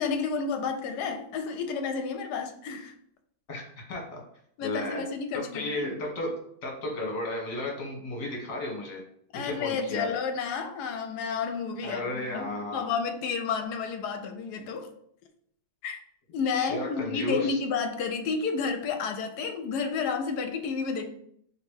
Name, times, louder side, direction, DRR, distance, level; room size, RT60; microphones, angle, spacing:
voice 1, 0.0-2.9 4.6-5.9 9.3-14.9 15.8-16.0 16.3-21.1, left 5 dB, 80° left, 1.2 m, -31 dB
voice 2, 3.5-4.2 4.6-5.0 5.5-6.3 6.6-9.0 9.3-10.1 11.8-12.8 16.5-17.6, left 2 dB, 55° left, 1.6 m, -33 dB
3.4 x 2.9 x 4.5 m
omnidirectional pair, 1.8 m